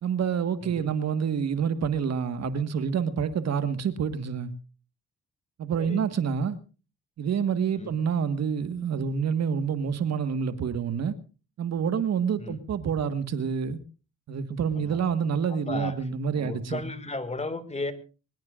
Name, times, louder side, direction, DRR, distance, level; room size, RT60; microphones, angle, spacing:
voice 1, 0.0-4.5 5.6-6.6 7.2-11.1 11.6-13.8 14.3-16.9, right 7 dB, 60° right, 1.6 m, -27 dB
voice 2, 0.6-0.9 5.8-6.0 7.8-7.9 12.4-12.6 14.8-15.1 15.5-16.0 16.3-17.9, left 2 dB, 20° left, 2.1 m, -35 dB
23.5 x 20.5 x 2.5 m
cardioid pair, 90°, 30 cm